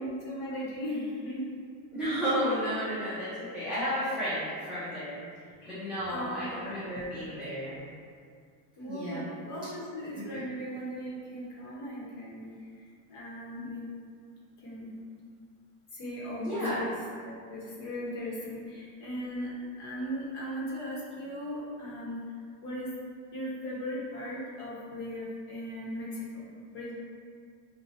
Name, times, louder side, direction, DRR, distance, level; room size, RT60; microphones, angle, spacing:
voice 1, 0.0-1.4 5.6-5.7 6.1-7.0 8.8-12.7 13.1-13.9 14.6-14.9 15.9-16.9 17.2-19.5 19.8-22.2 22.6-22.9 23.3-26.9, equal, 60° left, -6 dB, 1.0 m, -38 dB
voice 2, 1.9-5.2 5.6-7.8 8.8-9.2 10.2-10.3 16.4-16.8, equal, 5° right, -14 dB, 0.4 m, -32 dB
3.9 x 2.3 x 2.8 m, 2.1 s
cardioid pair, 175°, 39 cm